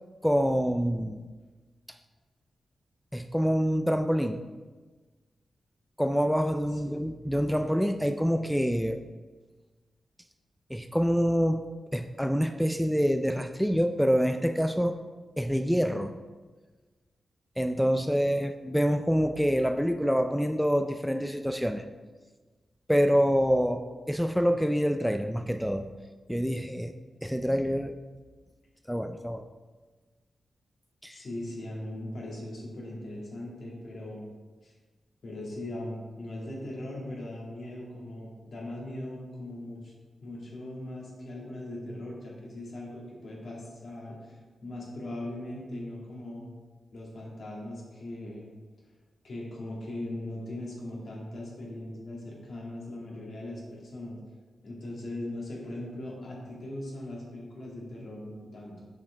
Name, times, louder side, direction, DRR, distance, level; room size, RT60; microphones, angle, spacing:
voice 1, 0.2-1.3 3.1-4.4 6.0-9.0 10.7-11.6 11.9-15.0 15.4-16.2 17.6-21.8 22.9-25.9 26.3-26.9 27.2-27.9 28.9-29.4 31.0-31.2, equal, ahead, 6 dB, 0.4 m, -26 dB
voice 2, 31.1-34.3 34.6-34.7 35.2-39.9 40.2-46.5 46.9-48.5 49.2-54.2 54.6-58.9, left 1 dB, 70° left, -4 dB, 2.1 m, -39 dB
7.0 x 5.5 x 3.4 m, 1.3 s
cardioid pair, 50°, 0 cm